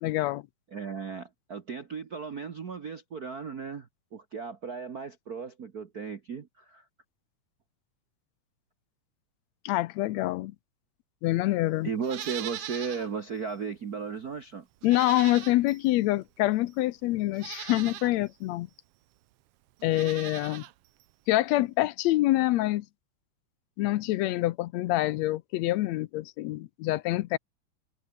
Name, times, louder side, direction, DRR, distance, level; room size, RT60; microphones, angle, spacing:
voice 1, 0.0-0.4 9.6-10.5 11.2-11.9 14.8-18.7 19.8-20.6 21.3-22.8 23.8-27.4, left 17 dB, 75° left, 1.7 m, -26 dB
voice 2, 0.7-6.8 11.8-14.7, right 6 dB, 60° right, 1.0 m, -36 dB
Livestock farm animals working animals, 12.0-13.1 13.5-13.6 14.8-15.9 16.7-16.8 17.3-18.1 19.8-20.7 21.0-21.1, right 15 dB, 85° right, 1.3 m, -40 dB
omnidirectional pair, 3.6 m